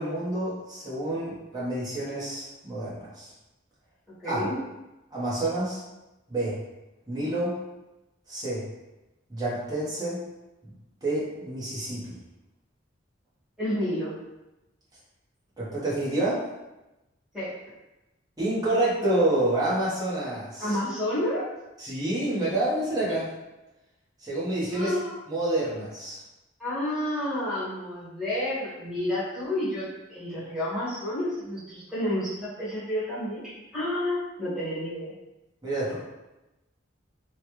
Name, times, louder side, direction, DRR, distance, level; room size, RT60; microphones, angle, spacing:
voice 1, 0.0-3.3 4.2-4.4 5.1-5.8 6.3-6.6 7.1-7.5 8.3-8.6 9.3-10.2 11.0-12.1 15.6-16.4 18.4-20.7 21.8-23.3 24.2-24.9 25.3-26.2 35.6-35.9, right 1 dB, 20° right, -8 dB, 1.0 m, -28 dB
voice 2, 4.2-4.6 13.6-14.1 17.3-17.6 20.6-21.5 24.7-25.2 26.6-35.1, left 1 dB, 5° right, -13 dB, 1.4 m, -30 dB
3.1 x 2.2 x 3.0 m, 0.98 s
head